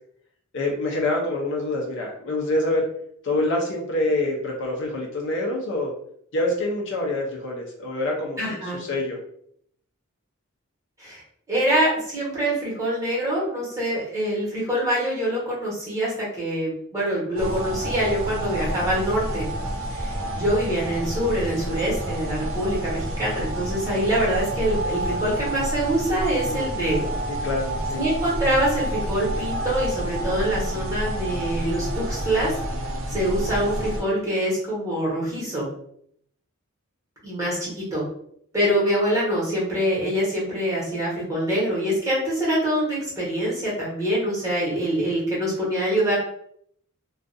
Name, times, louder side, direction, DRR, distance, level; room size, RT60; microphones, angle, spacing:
voice 1, 0.5-2.8 3.2-5.9 6.3-9.2 26.4-26.7 27.3-28.0, left 2 dB, 55° left, -1 dB, 0.5 m, -26 dB
voice 2, 8.4-8.8 11.0-11.2 11.5-19.4 19.9-27.1 27.9-32.5 33.1-35.7 37.2-38.0 38.5-46.2, right 1 dB, 15° right, -7 dB, 1.1 m, -25 dB
sound 1, 17.4-34.0, right 1 dB, 65° right, 0.5 m, -29 dB
2.5 x 2.3 x 2.5 m, 0.67 s
head